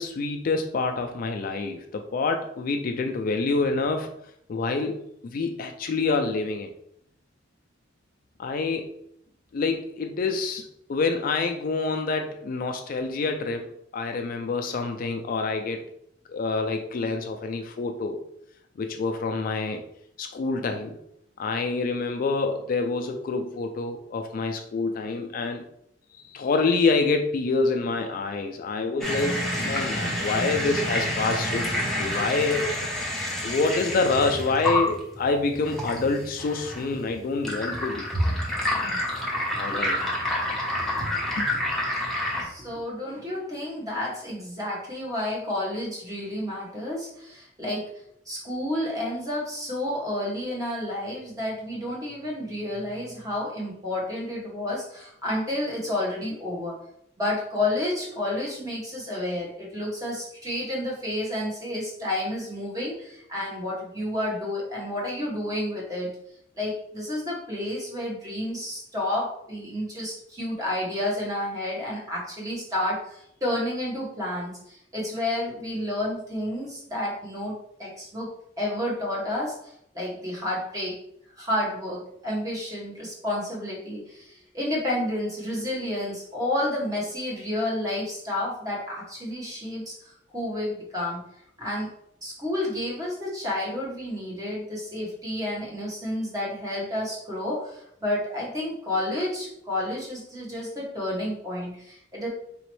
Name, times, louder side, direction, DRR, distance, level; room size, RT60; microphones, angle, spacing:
voice 1, 0.0-4.1 4.5-6.7 8.4-8.9 9.5-10.6 10.9-15.9 16.3-18.2 18.8-19.8 20.2-21.0 21.4-25.6 26.3-31.6 31.9-32.8 33.4-38.1 39.6-40.0 41.4-41.5, left 3 dB, 50° left, 6 dB, 0.3 m, -27 dB
sound 1, 29.0-42.4, left 1 dB, ahead, 0.9 m, -28 dB
voice 2, 42.3-47.8 48.3-56.7 57.2-66.2 66.5-78.3 78.6-81.0 81.4-89.9 90.3-91.3 91.6-91.9 92.2-102.3, left 1 dB, 20° right, -4 dB, 1.2 m, -30 dB
4.1 x 2.9 x 3.1 m, 0.73 s
head